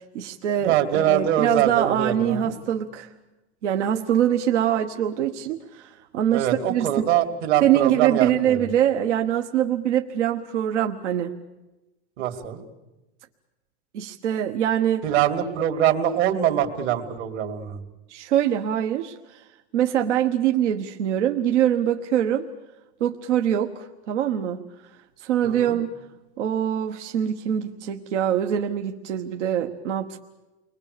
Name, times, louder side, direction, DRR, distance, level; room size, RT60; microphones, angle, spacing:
voice 1, 0.0-3.1 3.6-7.1 7.6-11.3 13.9-15.1 18.1-19.4 19.7-22.5 23.0-24.6 25.2-25.9 26.4-30.2, right 10 dB, 75° right, 4 dB, 1.5 m, -24 dB
voice 2, 0.6-2.6 6.3-8.7 12.2-12.6 15.0-17.8 25.4-25.8, right 10 dB, 60° right, 6 dB, 2.9 m, -23 dB
30.0 x 22.5 x 6.9 m, 1.1 s
supercardioid pair, 145°, 35 cm